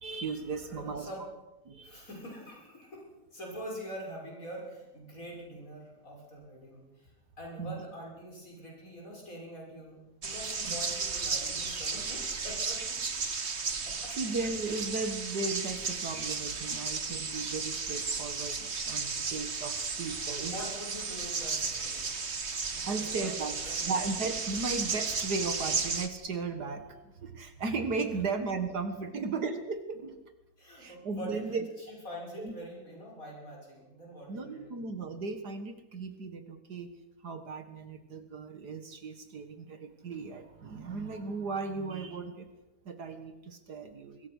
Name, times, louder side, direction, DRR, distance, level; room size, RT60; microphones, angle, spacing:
voice 1, 0.0-1.1 1.7-2.0 7.6-7.8 10.6-10.8 14.1-20.5 22.8-23.5 23.8-30.2 30.8-31.6 32.4-32.5 34.3-36.9 37.2-42.5 42.9-44.3, right 4 dB, 70° right, 8 dB, 2.2 m, -36 dB
voice 2, 0.6-1.2 1.8-13.0 13.9-14.1 19.6-19.7 20.4-22.2 22.7-23.9 28.1-28.2 30.6-34.8, equal, 55° left, -2 dB, 7.0 m, -45 dB
sound 1, 10.2-26.1, right 4 dB, 40° right, 1.8 m, -34 dB
25.5 x 22.0 x 6.4 m, 1.0 s
omnidirectional pair, 1.8 m